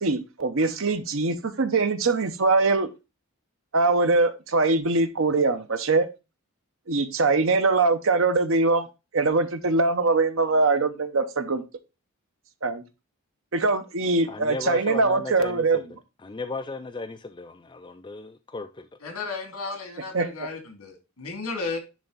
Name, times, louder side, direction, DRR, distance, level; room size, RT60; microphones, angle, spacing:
voice 1, 0.0-2.9 3.7-6.1 6.9-8.9 9.1-11.6 12.6-12.8 13.5-15.8 20.1-20.5, right 3 dB, 65° right, 0.8 m, -22 dB
voice 2, 14.3-18.9, left 3 dB, 20° left, 0.4 m, -35 dB
voice 3, 19.0-21.8, left 4 dB, 75° left, 2.7 m, -34 dB
10.5 x 3.5 x 4.0 m
head